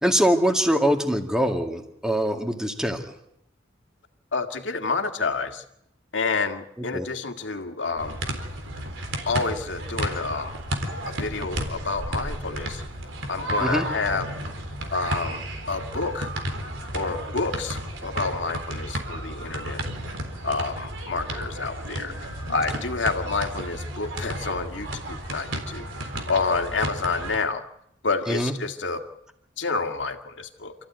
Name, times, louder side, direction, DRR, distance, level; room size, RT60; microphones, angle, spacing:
voice 1, 0.0-3.0 6.9-7.1 13.6-13.8 28.3-28.5, equal, 5° right, 4 dB, 2.1 m, -23 dB
voice 2, 4.3-5.6 6.1-8.2 9.3-10.6 11.1-12.8 13.3-14.3 14.9-16.3 16.9-19.8 20.4-27.6 28.0-29.0 29.6-30.7, left 4 dB, 75° left, 5 dB, 2.0 m, -29 dB
sound 1, 8.0-27.4, right 1 dB, 90° right, 3.9 m, -33 dB
27.5 x 15.0 x 9.4 m, 0.79 s
head